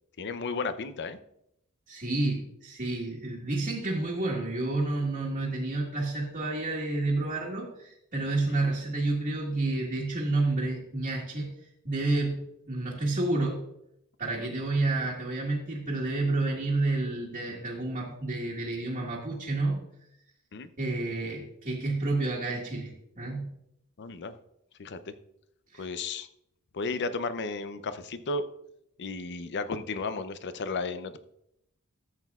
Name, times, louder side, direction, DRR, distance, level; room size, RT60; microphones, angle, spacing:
voice 1, 0.2-1.2 8.5-8.6 14.4-14.5 20.5-20.7 24.0-24.4 24.8-25.1 25.8-26.3 26.7-28.5 29.0-31.2, left 3 dB, 50° left, 11 dB, 0.6 m, -34 dB
voice 2, 1.9-11.5 11.8-13.6 14.2-19.8 20.8-23.5 25.7-25.9, right 2 dB, 40° right, -5 dB, 1.7 m, -30 dB
13.5 x 8.0 x 2.4 m, 0.78 s
head